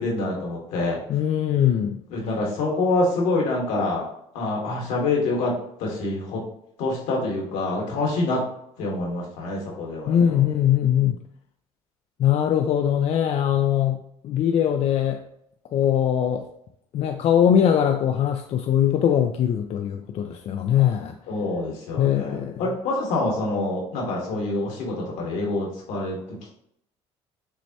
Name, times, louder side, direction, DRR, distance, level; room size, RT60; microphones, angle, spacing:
voice 1, 0.0-1.0 2.1-4.1 4.3-5.5 5.8-6.4 6.8-8.4 8.8-10.2 21.3-26.2, left 2 dB, 80° left, -2 dB, 1.5 m, -26 dB
voice 2, 1.1-2.0 10.1-11.2 12.2-14.0 14.2-15.2 15.7-16.5 16.9-21.2 22.0-22.6, left 9 dB, 55° left, 5 dB, 0.4 m, -21 dB
6.2 x 2.1 x 2.8 m, 0.73 s
supercardioid pair, 80°, 13 cm